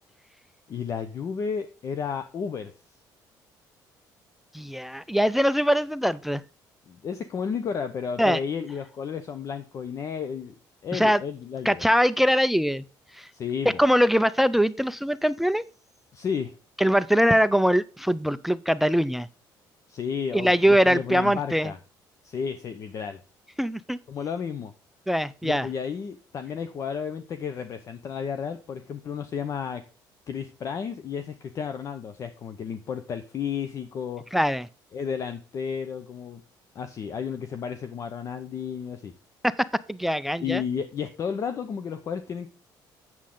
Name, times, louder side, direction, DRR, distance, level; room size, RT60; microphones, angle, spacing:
voice 1, 0.7-2.7 6.9-10.5 10.8-11.8 13.3-13.8 16.1-16.6 19.9-21.8 22.2-23.2 24.1-24.7 25.4-29.8 30.3-34.2 34.9-36.4 36.7-39.1 40.4-42.5, left 7 dB, 40° left, 10 dB, 0.7 m, -32 dB
voice 2, 4.5-6.4 8.2-8.4 10.9-11.2 11.7-12.8 13.1-13.3 13.7-15.6 16.8-19.3 20.3-21.7 23.6-24.0 25.1-25.7 34.3-34.7 39.4-40.6, equal, 5° right, 18 dB, 0.3 m, -22 dB
8.5 x 7.3 x 3.8 m, 0.35 s
cardioid pair, 140°, 8 cm